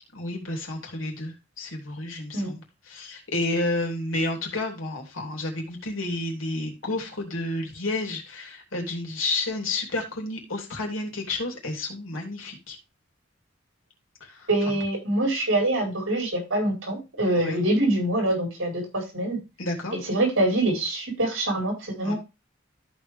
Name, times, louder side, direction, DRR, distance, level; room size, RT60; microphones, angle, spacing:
voice 1, 0.1-12.8 14.2-14.7 17.3-17.6 19.6-19.9 22.0-22.1, left 2 dB, 90° left, 1 dB, 3.1 m, -31 dB
voice 2, 14.5-19.4 19.9-22.1, right 1 dB, 75° right, 1 dB, 4.7 m, -25 dB
14.0 x 4.9 x 3.4 m, 0.26 s
head